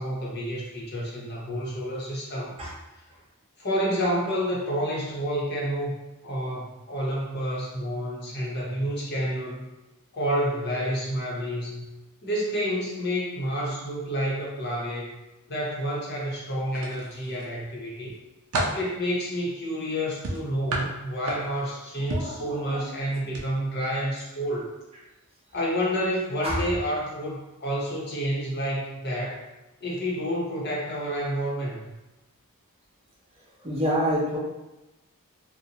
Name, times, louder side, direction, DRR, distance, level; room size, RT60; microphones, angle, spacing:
voice 1, 0.0-2.5 3.6-5.9 6.2-9.6 10.1-11.8 12.2-15.2 15.5-18.2 18.7-24.7 25.5-29.4 29.8-31.9, equal, 50° left, -4 dB, 0.7 m, -29 dB
sound 1, 16.7-17.5 18.0-18.9 20.2-21.7 22.1-22.4 23.2-23.4 23.8-24.0, right 1 dB, 70° right, 0.5 m, -31 dB
voice 2, 22.1-22.9 26.4-26.6 33.6-34.4, equal, 25° right, -5 dB, 0.5 m, -27 dB
2.6 x 2.1 x 2.8 m, 1.0 s
head